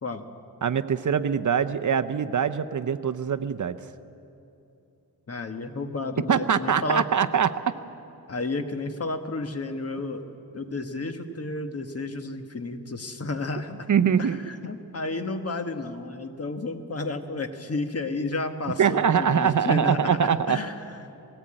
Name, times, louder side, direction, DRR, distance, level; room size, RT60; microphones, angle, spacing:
voice 1, 0.6-3.8 6.3-7.7 13.9-14.4 18.8-20.6, right 7 dB, 50° right, 12 dB, 0.7 m, -23 dB
voice 2, 5.3-7.0 8.3-10.3 10.5-13.9 14.2-21.0, left 2 dB, 40° left, 7 dB, 1.4 m, -32 dB
20.5 x 18.0 x 8.8 m, 2.8 s
wide cardioid pair, 125°, 38 cm